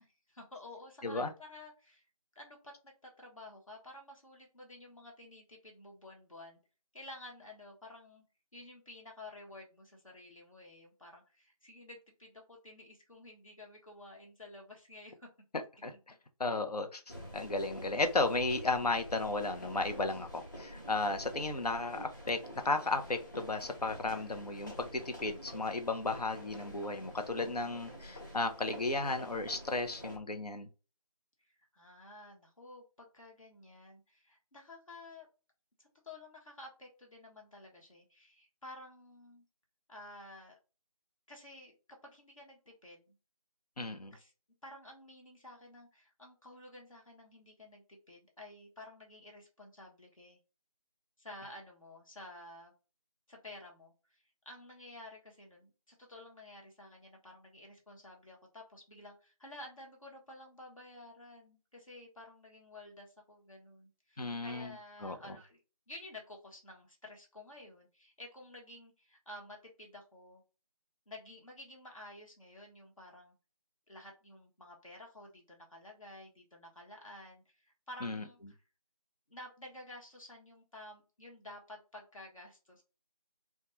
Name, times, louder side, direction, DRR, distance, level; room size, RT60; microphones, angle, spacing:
voice 1, 0.3-2.0 2.3-6.6 6.9-8.2 8.5-15.3 15.9-16.0 31.4-35.3 35.8-39.4 39.9-40.5 41.3-41.7 42.0-43.1 44.1-44.3 44.6-50.4 51.2-52.7 53.3-65.6 65.9-70.4 71.1-73.3 73.9-78.6 79.3-82.8, left 1 dB, 60° left, 0.9 m, -52 dB
voice 2, 16.4-17.0 17.3-22.4 22.6-30.7 43.8-44.1 64.2-64.7 65.0-65.2 78.0-78.2, left 3 dB, 85° left, 0.6 m, -34 dB
sound 1, 17.1-30.2, equal, 30° left, 0.6 m, -48 dB
2.2 x 2.2 x 2.9 m
figure-of-eight pair, 170°, 20 cm